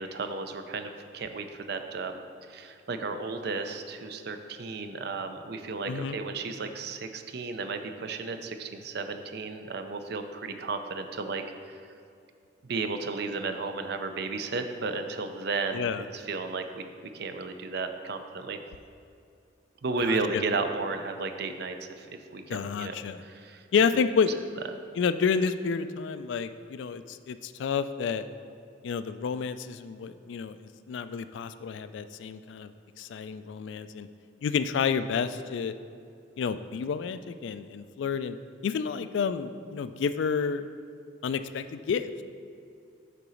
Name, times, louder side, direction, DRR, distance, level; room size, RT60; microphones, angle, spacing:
voice 1, 0.0-2.2 2.5-11.8 12.6-16.8 17.1-18.6 19.8-22.1 22.3-23.6, right 3 dB, 55° right, 7 dB, 0.5 m, -34 dB
voice 2, 15.7-16.0 20.0-20.4 22.5-23.2 23.7-24.3 25.0-28.2 28.8-30.6 30.9-32.7 33.0-34.1 34.4-35.7 36.4-38.4 38.6-40.7 41.2-42.2, left 6 dB, 70° left, 12 dB, 0.3 m, -29 dB
6.7 x 3.9 x 6.2 m, 2.5 s
head